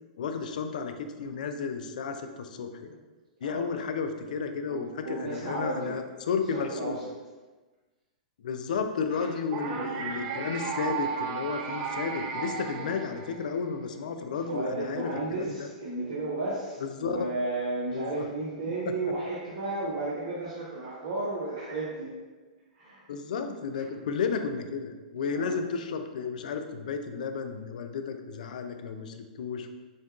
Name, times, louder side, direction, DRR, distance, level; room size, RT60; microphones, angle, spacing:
voice 1, 0.2-3.0 3.4-7.0 8.4-15.7 16.8-17.2 17.9-18.3 23.1-29.7, left 5 dB, 75° left, 7 dB, 0.4 m, -33 dB
voice 2, 4.7-6.0 6.5-7.1 9.1-9.3 9.7-10.1 14.3-22.2 22.7-23.0 25.3-25.5, right 2 dB, 60° right, -7 dB, 1.0 m, -33 dB
sound 1, 9.5-13.7, right 6 dB, 40° right, 0.5 m, -34 dB
6.2 x 2.2 x 2.4 m, 1.3 s
hypercardioid pair, 125°, 4 cm